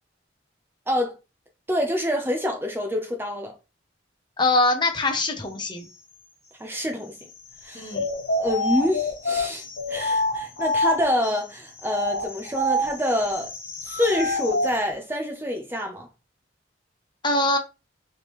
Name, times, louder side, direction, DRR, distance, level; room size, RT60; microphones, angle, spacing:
voice 1, 1.7-3.5 6.6-7.1 7.6-7.9 8.4-13.5 13.8-16.1, equal, 10° right, 0.6 m, -26 dB
voice 2, 4.4-5.8 7.7-8.0 17.2-17.6, left 2 dB, 25° left, 0.8 m, -23 dB
sound 1, 7.9-11.3 11.8-14.7, left 2 dB, 65° left, 1.5 m, -26 dB
4.9 x 3.3 x 3.0 m
head